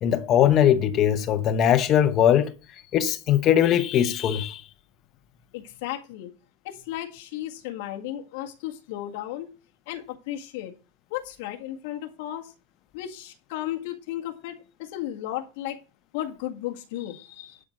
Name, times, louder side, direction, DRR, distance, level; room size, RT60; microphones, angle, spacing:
voice 1, 0.0-2.5 2.9-4.6, left 10 dB, 30° left, 0.9 m, -20 dB
voice 2, 5.5-6.3 6.6-9.5 9.9-10.7 11.1-12.5 12.9-15.8 16.1-17.6, left 13 dB, 55° left, 1.8 m, -34 dB
11.5 x 4.5 x 6.6 m
supercardioid pair, 165°, 0 cm